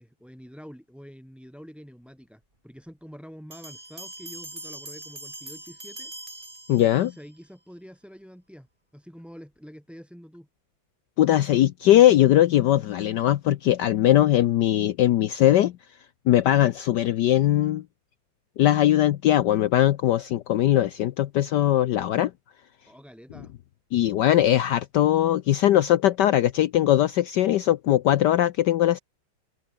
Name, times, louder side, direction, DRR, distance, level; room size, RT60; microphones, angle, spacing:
voice 1, 0.0-6.1 6.8-8.7 8.9-10.5 22.9-23.5, equal, ahead, 6.2 m, -46 dB
sound 1, 3.5-7.3, right 2 dB, 25° right, 5.0 m, -42 dB
voice 2, 6.7-7.1 11.2-15.7 16.3-17.8 18.6-22.3 23.9-29.0, left 12 dB, 65° left, 1.2 m, -20 dB
open air
omnidirectional pair, 2.1 m